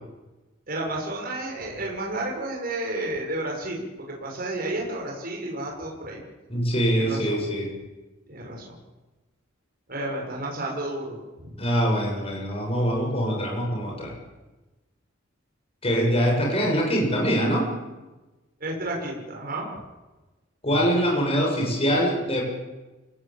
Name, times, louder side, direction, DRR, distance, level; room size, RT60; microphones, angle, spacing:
voice 1, 0.7-6.2 6.9-7.4 8.3-8.8 9.9-11.5 18.6-19.7, right 1 dB, 50° right, -1 dB, 6.3 m, -31 dB
voice 2, 6.5-7.7 11.6-14.1 15.8-17.7 20.6-22.4, equal, 30° left, -1 dB, 7.2 m, -23 dB
27.5 x 19.0 x 8.8 m, 1.1 s
head